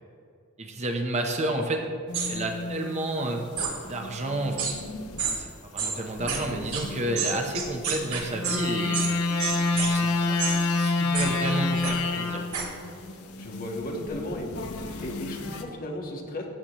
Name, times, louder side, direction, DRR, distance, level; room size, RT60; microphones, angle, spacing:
voice 1, 0.6-1.8 2.3-3.4 3.8-4.7 5.3-9.0 9.7-12.4, right 1 dB, 30° right, 3 dB, 0.8 m, -31 dB
sound 1, 2.1-5.5 6.1-15.6, left 3 dB, 80° left, 0.9 m, -30 dB
sound 2, 2.1-2.3 3.6-3.7 4.6-4.7 5.2-5.3 5.8-5.9 6.3-6.4 6.7-6.8 7.2-8.6 8.9-9.1 9.4-9.9 10.4-10.6 11.1-11.3 11.8-11.9 12.5-12.6, right 7 dB, 85° right, 2.1 m, -28 dB
voice 2, 12.0-12.4 13.4-14.5 15.0-16.4, left 1 dB, 40° left, 0 dB, 1.4 m, -35 dB
15.0 x 8.2 x 3.1 m, 2.4 s
head